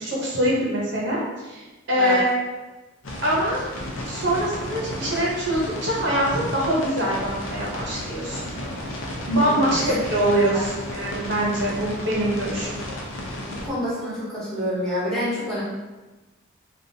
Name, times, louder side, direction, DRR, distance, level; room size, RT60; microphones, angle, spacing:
voice 1, 0.0-2.3 3.2-3.7 4.0-8.5 9.3-12.8, right 1 dB, 65° right, -6 dB, 0.9 m, -24 dB
sound 1, 3.0-13.7, left 1 dB, 80° left, 0.7 m, -33 dB
voice 2, 9.4-9.9 10.3-10.7 13.4-15.6, equal, 5° left, -10 dB, 1.1 m, -28 dB
3.4 x 2.5 x 2.7 m, 1.2 s
head